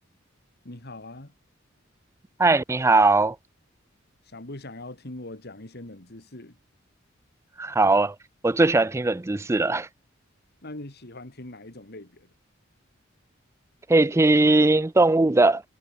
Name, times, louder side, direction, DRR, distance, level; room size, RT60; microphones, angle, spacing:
voice 1, 0.6-1.3 4.2-6.6 10.6-12.3, left 1 dB, 55° left, 2.6 m, -41 dB
voice 2, 2.4-3.4 7.6-8.1 8.4-9.9 13.9-15.6, right 2 dB, 15° right, 0.4 m, -19 dB
head